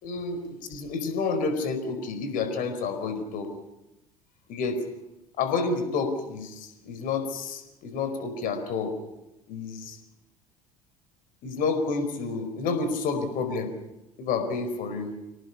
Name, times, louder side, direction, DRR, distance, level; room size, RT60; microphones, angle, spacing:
voice 1, 0.0-3.5 4.5-4.8 5.4-8.9 9.5-10.0 11.4-13.7 14.2-15.1, left 4 dB, 50° left, 8 dB, 4.8 m, -29 dB
26.5 x 18.5 x 7.2 m, 0.95 s
figure-of-eight pair, 60°, 18 cm